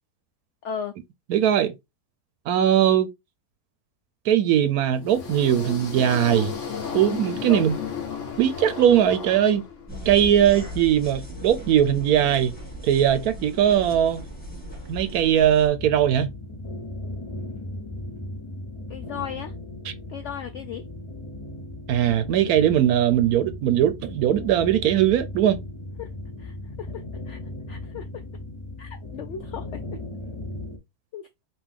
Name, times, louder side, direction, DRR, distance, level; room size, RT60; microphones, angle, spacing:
voice 1, 0.6-0.9 7.5-7.7 18.9-19.5 20.1-20.8 26.0-26.1 26.4-27.4 27.7-28.2 28.8-29.8 31.1-31.3, left 8 dB, 70° left, 0.7 m, -36 dB
voice 2, 1.3-1.7 2.5-3.1 4.3-6.5 6.9-7.8 8.4-9.6 10.1-12.5 12.8-14.2 14.9-16.3 21.9-25.6, right 10 dB, 75° right, 1.0 m, -20 dB
sound 1, 4.9-10.1, left 6 dB, 50° left, 1.5 m, -33 dB
sound 2, 9.9-15.7, equal, 5° left, 2.1 m, -37 dB
sound 3, 15.7-30.8, left 2 dB, 35° left, 0.5 m, -37 dB
5.3 x 2.8 x 3.5 m
omnidirectional pair, 1.6 m